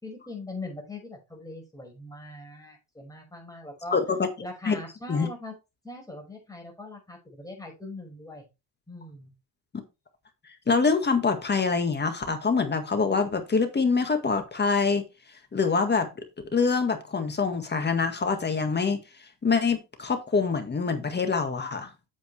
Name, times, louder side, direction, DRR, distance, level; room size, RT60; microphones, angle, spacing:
voice 1, 0.0-4.0 4.4-5.6 5.8-8.5 8.9-9.3, left 2 dB, 10° left, 5.2 m, -41 dB
voice 2, 3.9-4.3 4.6-4.8 5.1-5.3 10.7-15.1 15.5-16.1 16.5-19.0 19.4-21.9, left 4 dB, 25° left, 1.8 m, -25 dB
8.8 x 7.4 x 3.3 m
cardioid pair, 115°, 41 cm